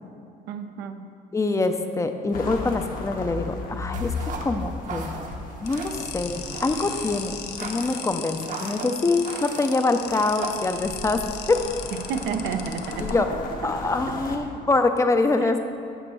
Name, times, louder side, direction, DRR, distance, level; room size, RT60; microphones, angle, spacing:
voice 1, 0.5-1.1 12.1-13.2 13.7-13.9, right 6 dB, 85° right, 7 dB, 0.6 m, -31 dB
voice 2, 1.3-4.1 4.4-5.1 5.6-11.2 11.5-11.6 13.0-13.3 13.6-15.6, left 3 dB, 20° left, 7 dB, 0.5 m, -24 dB
sound 1, 2.3-8.8 9.9-14.4, left 3 dB, 55° left, 1.0 m, -36 dB
sound 2, 3.9-11.1, right 4 dB, 50° right, 0.9 m, -38 dB
sound 3, 5.7-13.1, left 9 dB, 75° left, 0.6 m, -37 dB
9.1 x 4.3 x 6.2 m, 2.4 s
cardioid pair, 110°, 17 cm